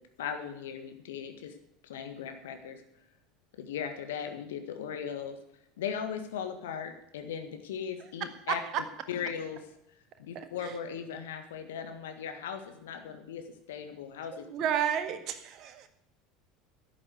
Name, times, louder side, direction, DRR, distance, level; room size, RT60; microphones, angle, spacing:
voice 1, 0.2-1.5 1.8-2.8 3.6-5.4 5.8-9.6 10.2-14.5, left 7 dB, 65° left, 7 dB, 1.6 m, -38 dB
voice 2, 10.3-10.7 14.3-15.9, right 9 dB, 45° right, 9 dB, 1.7 m, -32 dB
11.5 x 8.4 x 9.7 m, 0.76 s
figure-of-eight pair, 70°, 0 cm